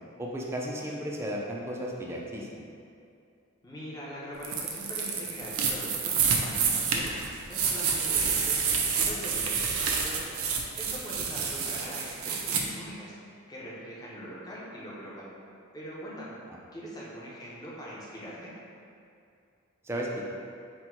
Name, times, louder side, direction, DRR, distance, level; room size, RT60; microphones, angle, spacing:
voice 1, 0.2-2.7 19.8-20.2, equal, 10° right, -2 dB, 0.4 m, -34 dB
voice 2, 3.6-7.1 7.4-10.3 10.8-13.1 13.5-15.3 15.7-16.3 16.7-18.5, equal, 20° left, -7 dB, 0.8 m, -42 dB
sound 1, 4.4-12.6, right 6 dB, 90° right, 0.5 m, -28 dB
4.3 x 2.2 x 4.4 m, 2.4 s
head